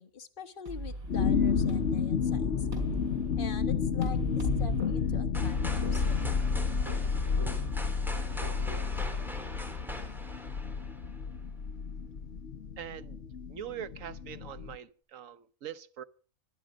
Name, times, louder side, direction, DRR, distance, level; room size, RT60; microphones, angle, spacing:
voice 1, 0.0-2.7 3.4-6.3, left 6 dB, 40° left, 1.6 m, -45 dB
sound 1, 0.7-8.9, right 1 dB, 90° right, 5.1 m, -42 dB
sound 2, 1.1-14.8, left 6 dB, 55° left, 1.3 m, -31 dB
sound 3, 5.3-11.2, left 1 dB, ahead, 3.0 m, -41 dB
voice 2, 12.8-13.2 13.5-16.0, right 9 dB, 70° right, 1.3 m, -42 dB
22.5 x 11.5 x 5.2 m
omnidirectional pair, 1.4 m